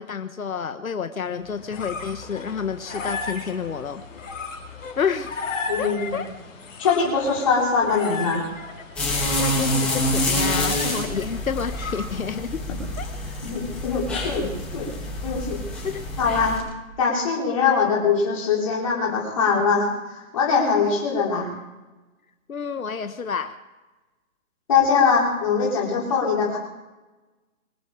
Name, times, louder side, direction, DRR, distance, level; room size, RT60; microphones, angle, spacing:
voice 1, 0.0-4.0 5.0-5.3 5.8-6.3 9.4-12.6 13.0-13.1 15.8-16.0 20.7-20.9 22.5-23.5, left 6 dB, 85° left, 8 dB, 1.5 m, -29 dB
sound 1, 1.3-12.5, left 3 dB, 65° left, 4.4 m, -35 dB
voice 2, 5.7-6.1 6.8-8.5 13.4-14.9 15.2-15.6 16.2-16.6 17.0-19.9 20.3-21.5 24.7-26.6, left 5 dB, 25° left, -4 dB, 4.3 m, -22 dB
sound 2, 9.0-16.6, left 1 dB, 5° left, 1.8 m, -27 dB
25.0 x 10.5 x 5.0 m, 1.1 s
hypercardioid pair, 180°, 41 cm